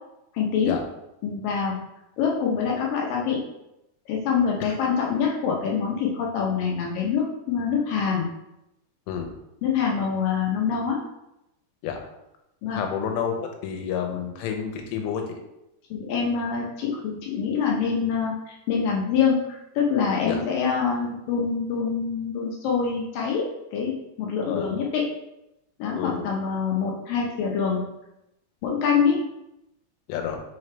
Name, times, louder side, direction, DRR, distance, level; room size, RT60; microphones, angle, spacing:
voice 1, 0.3-0.8 1.2-1.8 2.2-3.4 4.1-8.3 9.6-11.0 12.6-12.8 15.9-23.5 23.7-25.1 25.8-27.8 28.6-29.2, left 6 dB, 75° left, -2 dB, 2.2 m, -25 dB
voice 2, 12.7-15.4 20.2-20.4 24.5-24.7 25.9-26.2 30.1-30.4, left 7 dB, 90° left, 4 dB, 3.0 m, -29 dB
5.7 x 5.1 x 3.3 m, 0.87 s
omnidirectional pair, 4.8 m